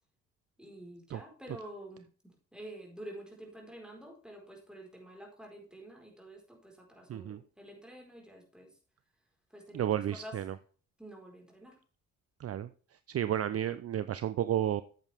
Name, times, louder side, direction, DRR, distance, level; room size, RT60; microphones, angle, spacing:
voice 1, 0.6-8.7 9.5-10.4 11.0-11.8, right 1 dB, ahead, 0 dB, 4.5 m, -49 dB
voice 2, 7.1-7.4 9.7-10.5 12.4-12.7 13.1-14.8, right 11 dB, 45° right, 14 dB, 0.5 m, -32 dB
9.1 x 8.0 x 3.5 m, 0.40 s
hypercardioid pair, 50°, 33 cm